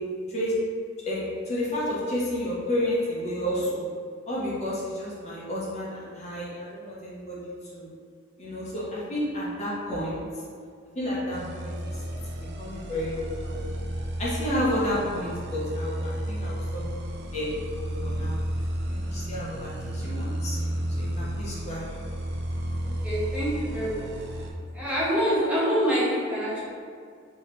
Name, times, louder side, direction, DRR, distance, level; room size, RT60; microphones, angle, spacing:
voice 1, 1.0-3.8 4.3-7.9 8.4-10.2 10.9-12.0 12.6-13.6 14.2-16.8 17.3-18.3 18.9-20.7 21.0-22.0, left 1 dB, 35° left, -7 dB, 0.7 m, -31 dB
sound 1, 11.3-24.5, right 1 dB, 55° right, 0.4 m, -32 dB
voice 2, 22.8-24.1 24.7-26.6, equal, 5° right, -9 dB, 0.9 m, -26 dB
4.1 x 2.8 x 3.1 m, 2.2 s
head